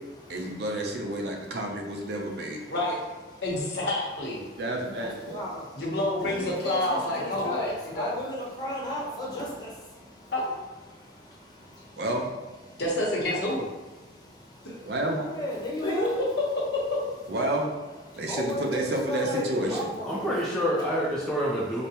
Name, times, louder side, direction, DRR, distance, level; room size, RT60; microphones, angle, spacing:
voice 1, 0.3-2.6 4.6-5.5 12.0-12.2 14.8-15.2 17.3-17.7 18.2-19.9, right 1 dB, 60° right, 0 dB, 0.6 m, -30 dB
voice 2, 3.4-4.4 5.8-8.2 10.3-10.4 12.8-13.6 14.6-14.7 15.8-16.8, left 1 dB, 60° left, -4 dB, 1.0 m, -28 dB
voice 3, 5.3-5.6 6.3-9.7 15.3-16.1 18.3-18.8 19.1-19.4 19.7-20.2, equal, 25° left, -5 dB, 0.8 m, -33 dB
voice 4, 19.6-21.9, equal, 5° left, -7 dB, 0.5 m, -28 dB
5.0 x 2.1 x 2.8 m, 1.3 s
head